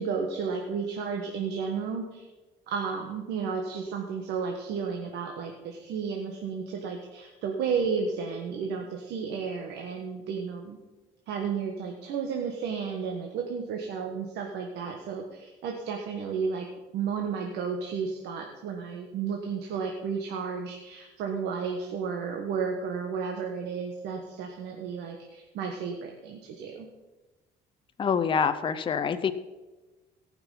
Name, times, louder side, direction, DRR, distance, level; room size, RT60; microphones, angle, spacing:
voice 1, 0.0-2.3 2.7-10.8 11.3-16.7 16.9-26.9, right 5 dB, 80° right, 2 dB, 1.4 m, -32 dB
voice 2, 28.0-29.3, left 6 dB, 30° left, 10 dB, 0.6 m, -26 dB
17.5 x 6.0 x 5.6 m, 1.2 s
cardioid pair, 110°, 17 cm